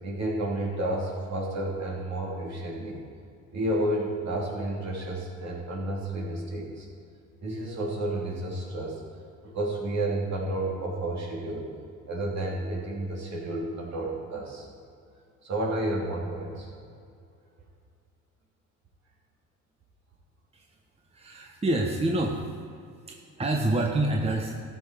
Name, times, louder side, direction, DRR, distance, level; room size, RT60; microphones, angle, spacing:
voice 1, 0.0-3.0 3.5-6.9 7.4-9.1 9.4-11.7 12.1-14.7 15.4-16.7, right 1 dB, 55° right, -2 dB, 3.0 m, -31 dB
voice 2, 21.1-22.5 23.1-24.5, right 2 dB, 20° right, 1 dB, 1.1 m, -27 dB
13.0 x 7.1 x 5.0 m, 2.4 s
supercardioid pair, 75°, 32 cm